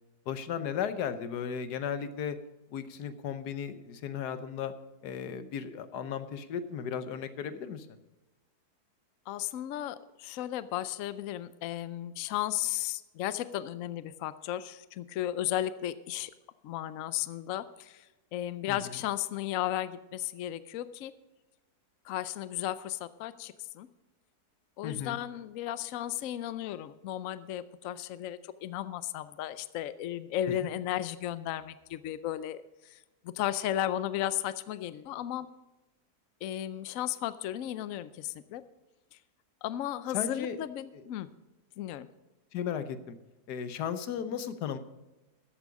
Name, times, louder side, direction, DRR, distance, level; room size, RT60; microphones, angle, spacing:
voice 1, 0.3-2.4 2.7-4.7 5.0-7.9 18.7-18.8 24.8-25.2 30.6-30.7 40.1-40.6 42.5-43.2 43.5-44.8, left 8 dB, 90° left, 11 dB, 1.4 m, -35 dB
voice 2, 9.3-16.3 16.6-18.1 18.3-21.1 22.0-23.9 24.8-35.5 36.4-38.6 39.1-39.2 39.6-41.3 41.8-42.1, left 12 dB, 65° left, 14 dB, 0.9 m, -35 dB
14.0 x 8.3 x 5.2 m, 1.1 s
omnidirectional pair, 1.7 m